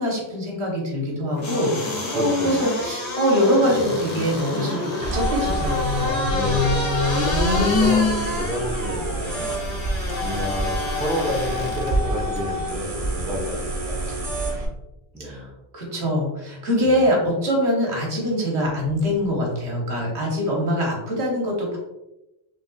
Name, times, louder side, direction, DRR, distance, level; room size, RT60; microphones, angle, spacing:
voice 1, 0.0-6.3 15.2-15.5 15.7-21.8, equal, 80° right, -1 dB, 1.5 m, -23 dB
sound 1, 1.4-11.9 12.4-12.5, left 3 dB, 40° left, 1.4 m, -26 dB
voice 2, 2.1-2.9 6.3-7.0 7.5-9.5 10.2-14.1 15.1-15.5 16.8-17.0, equal, ahead, -4 dB, 0.8 m, -30 dB
sound 2, 5.0-14.7, right 1 dB, 35° right, 0.8 m, -27 dB
5.2 x 3.3 x 2.3 m, 0.94 s
omnidirectional pair, 1.1 m